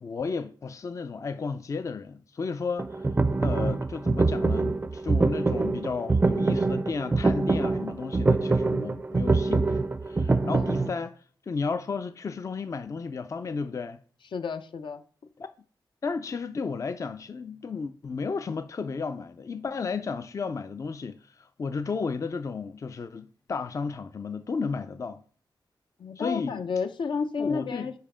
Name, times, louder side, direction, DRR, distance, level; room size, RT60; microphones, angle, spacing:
voice 1, 0.0-3.1 3.4-11.2 11.5-14.0 15.4-15.5 16.0-25.2 26.2-26.7 27.4-27.9, left 5 dB, 40° left, 0.4 m, -33 dB
sound 1, 2.8-10.9, right 3 dB, 25° right, 0.4 m, -25 dB
voice 2, 10.4-11.0 14.3-15.0 26.0-27.9, left 5 dB, 75° left, 0.7 m, -32 dB
5.4 x 4.9 x 4.9 m
wide cardioid pair, 105°, 8 cm